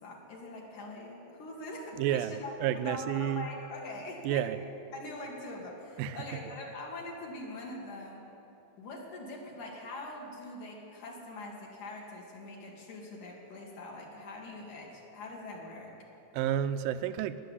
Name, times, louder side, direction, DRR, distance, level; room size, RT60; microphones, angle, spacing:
voice 1, 0.0-4.5 4.9-8.2 8.8-15.9, left 2 dB, 60° left, -2 dB, 3.2 m, -43 dB
voice 2, 2.0-3.5 4.2-4.6 6.0-6.2 16.3-17.4, right 10 dB, 85° right, 12 dB, 2.3 m, -30 dB
19.5 x 7.0 x 9.7 m, 2.9 s
omnidirectional pair, 4.1 m